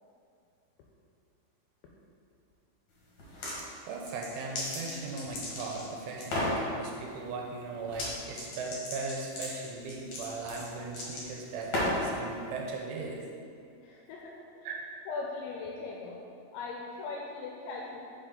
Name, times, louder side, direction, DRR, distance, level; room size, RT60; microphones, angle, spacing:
sound 1, 3.2-3.6 4.1-5.9 6.2-6.6 7.9-8.1 8.4-12.1, left 1 dB, 65° left, 1.9 m, -34 dB
voice 1, 3.9-13.3 14.6-14.8, right 3 dB, 85° right, 0 dB, 3.0 m, -38 dB
voice 2, 13.7-14.4 15.1-16.2 16.5-18.0, left 4 dB, 85° left, -1 dB, 2.7 m, -39 dB
6.5 x 6.5 x 3.8 m, 2.4 s
omnidirectional pair, 5.7 m